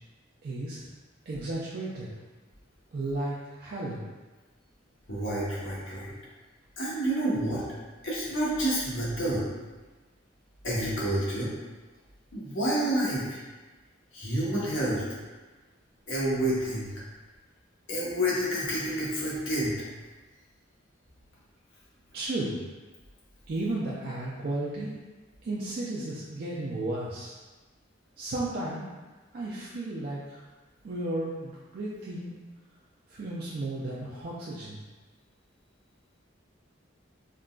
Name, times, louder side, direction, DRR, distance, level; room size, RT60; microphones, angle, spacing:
voice 1, 0.4-0.8 1.3-2.1 2.9-4.0 22.1-22.6 23.5-24.9 25.4-27.4 28.2-28.8 29.3-30.4 30.8-32.4 33.1-34.8, right 2 dB, 50° right, -7 dB, 0.4 m, -34 dB
voice 2, 5.1-6.1 6.8-7.6 8.0-9.5 10.6-11.5 12.3-13.4 14.1-15.0 16.1-16.9 17.9-19.8, right 1 dB, 75° left, -7 dB, 1.0 m, -29 dB
3.7 x 2.2 x 2.3 m, 1.3 s
head